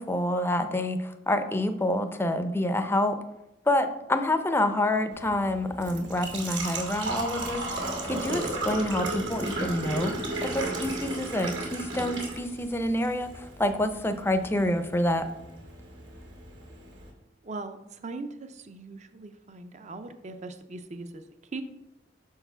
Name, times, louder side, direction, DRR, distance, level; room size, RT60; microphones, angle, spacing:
voice 1, 0.0-3.2 3.7-10.2 10.4-15.3, left 1 dB, 15° left, 8 dB, 0.5 m, -27 dB
Engine / Trickle dribble / Fill (with liquid), 5.1-17.1, right 2 dB, 75° right, 2.2 m, -35 dB
voice 2, 17.4-21.2 21.5-21.6, right 3 dB, 40° right, 9 dB, 0.6 m, -40 dB
6.2 x 4.7 x 5.5 m, 0.89 s
head